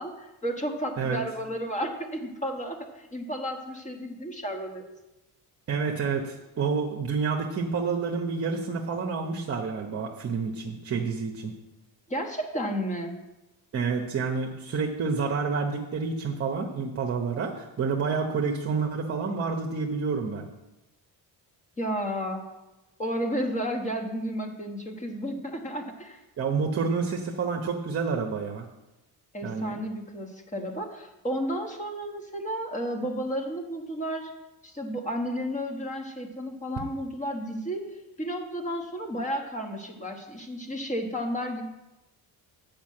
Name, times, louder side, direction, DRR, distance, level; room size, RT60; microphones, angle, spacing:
voice 1, 0.0-4.9 12.1-13.1 21.8-22.4 23.0-26.2 29.3-34.3 34.6-41.6, equal, 20° left, 3 dB, 1.2 m, -32 dB
voice 2, 5.7-11.5 13.7-20.5 26.4-28.7 29.4-29.8, right 5 dB, 35° right, 3 dB, 0.9 m, -29 dB
9.1 x 5.2 x 7.6 m, 1.0 s
cardioid pair, 155°, 38 cm